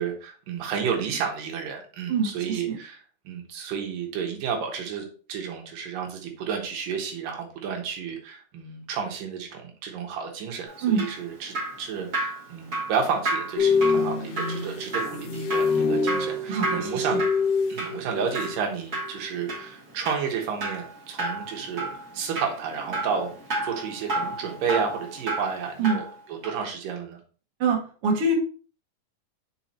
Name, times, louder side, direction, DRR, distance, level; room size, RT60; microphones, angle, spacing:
voice 1, 0.0-17.2 17.7-23.3 23.6-27.2, right 6 dB, 85° right, 2 dB, 2.9 m, -31 dB
voice 2, 2.1-2.8 10.8-11.1 16.5-17.2 25.8-26.0 27.6-28.3, right 4 dB, 50° right, -1 dB, 2.3 m, -25 dB
Drip, 10.7-26.1 26.4-26.6, right 2 dB, 35° right, 2.0 m, -32 dB
sound 1, 13.6-18.7 19.0-19.3, left 4 dB, 85° left, 1.3 m, -26 dB
5.9 x 4.8 x 4.2 m, 0.40 s
omnidirectional pair, 3.8 m